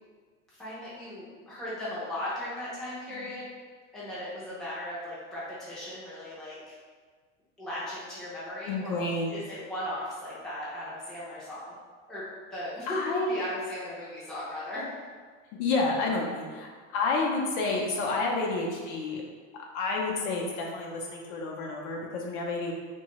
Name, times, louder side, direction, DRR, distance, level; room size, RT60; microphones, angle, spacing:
voice 1, 0.6-3.5 3.9-6.7 7.6-9.0 9.3-11.7 12.1-12.2 12.5-13.0 13.3-14.9, left 1 dB, ahead, -10 dB, 0.5 m, -37 dB
voice 2, 8.7-9.4 12.9-13.4 15.6-19.2 19.7-22.7, left 3 dB, 65° left, -1 dB, 0.6 m, -30 dB
2.7 x 2.2 x 2.9 m, 1.5 s
supercardioid pair, 145°, 37 cm